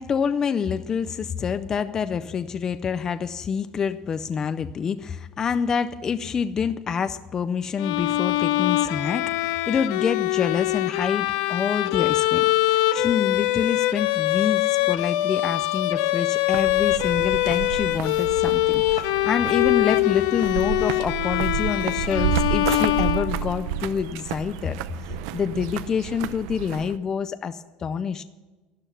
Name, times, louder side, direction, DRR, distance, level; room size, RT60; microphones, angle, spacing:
voice 1, 0.0-24.8 25.3-28.2, left 6 dB, 20° left, 12 dB, 0.4 m, -27 dB
Bowed string instrument, 7.8-23.8, left 16 dB, 85° left, 0.7 m, -23 dB
sound 1, 16.5-27.0, right 11 dB, 75° right, 0.6 m, -31 dB
12.0 x 11.5 x 7.2 m, 1.2 s
cardioid pair, 170°, 3 cm